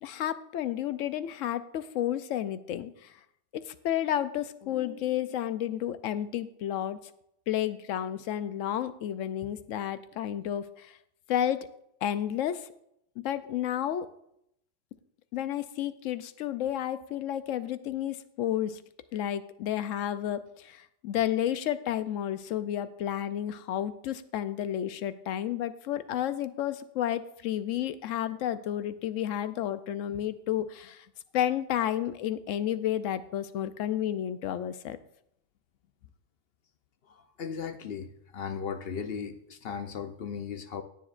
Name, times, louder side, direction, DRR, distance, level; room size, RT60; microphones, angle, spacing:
voice 1, 0.0-3.1 3.5-7.0 7.5-11.0 11.3-11.7 12.0-12.7 13.2-14.1 15.3-18.8 19.1-31.1 31.3-35.0, left 11 dB, 85° left, 13 dB, 1.0 m, -31 dB
voice 2, 37.4-38.1 38.3-39.4 39.6-40.8, left 6 dB, 60° left, 9 dB, 0.7 m, -36 dB
19.5 x 7.2 x 2.5 m, 0.75 s
omnidirectional pair, 1.3 m